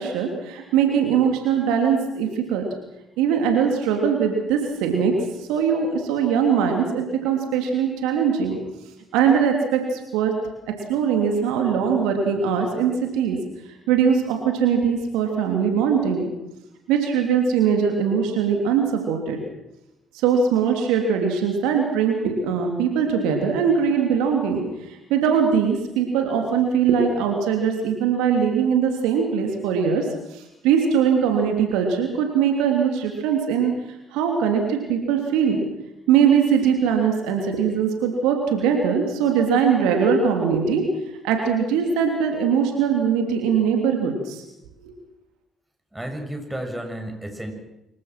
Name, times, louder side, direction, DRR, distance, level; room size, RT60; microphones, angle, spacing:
voice 1, 0.0-2.6 3.2-5.1 5.4-8.6 9.1-10.3 10.9-13.4 13.9-16.2 16.9-19.4 20.1-33.7 34.1-35.6 36.1-40.8 41.2-44.4 44.8-44.9, right 7 dB, 75° right, 3 dB, 3.2 m, -21 dB
voice 2, 45.9-47.5, right 1 dB, 10° right, 4 dB, 7.0 m, -32 dB
26.5 x 22.5 x 6.2 m, 0.93 s
hypercardioid pair, 45°, 0 cm